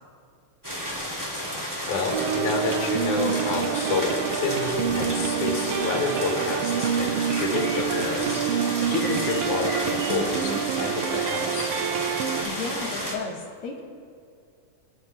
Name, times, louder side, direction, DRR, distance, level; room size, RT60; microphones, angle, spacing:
sound 1, 0.6-13.1, equal, 10° right, 2.4 m, -32 dB
voice 1, 1.9-11.7, left 4 dB, 85° left, 1 dB, 3.1 m, -29 dB
sound 2, 2.1-12.4, right 8 dB, 85° right, 1.3 m, -27 dB
voice 2, 12.4-13.8, left 4 dB, 55° left, -2 dB, 2.2 m, -34 dB
27.0 x 9.7 x 2.3 m, 2.2 s
omnidirectional pair, 3.4 m